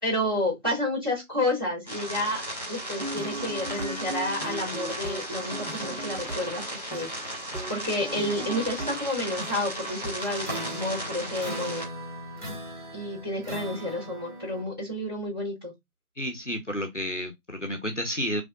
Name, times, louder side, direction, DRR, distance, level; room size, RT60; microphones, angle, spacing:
voice 1, 0.0-2.4 2.7-7.1 7.7-11.8 12.9-15.7, left 1 dB, 15° right, 3.1 m, -30 dB
sound 1, 1.9-11.8, right 1 dB, 25° left, 2.8 m, -36 dB
sound 2, 2.8-9.5 10.0-10.1 10.7-10.8, right 1 dB, 30° right, 1.8 m, -38 dB
sound 3, 10.4-14.6, equal, 80° right, 1.9 m, -39 dB
voice 2, 16.2-18.4, equal, 55° left, 0.9 m, -31 dB
4.9 x 3.3 x 2.5 m
figure-of-eight pair, 175°, 44 cm